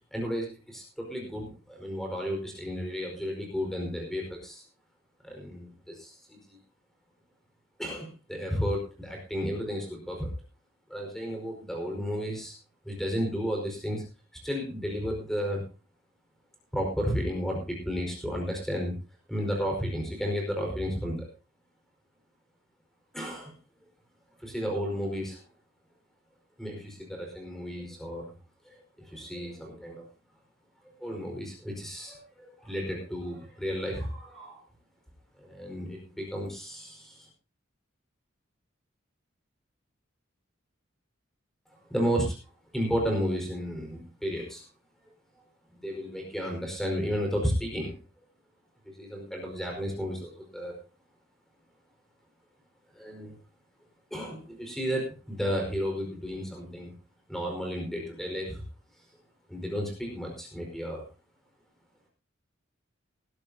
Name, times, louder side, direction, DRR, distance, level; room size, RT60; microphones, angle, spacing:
voice 1, 0.1-4.6 5.2-6.6 7.8-10.3 10.9-12.5 12.8-14.0 14.4-15.6 16.7-19.0 19.3-21.3 23.1-23.5 24.4-25.4 26.6-28.3 28.6-30.1 31.0-34.6 35.4-37.3 41.9-42.3 42.7-44.6 45.7-48.0 48.8-50.8 52.9-53.4 54.1-56.9 57.3-58.6 59.5-61.0, equal, ahead, 1 dB, 4.8 m, -33 dB
20.0 x 12.5 x 2.8 m, 0.32 s
head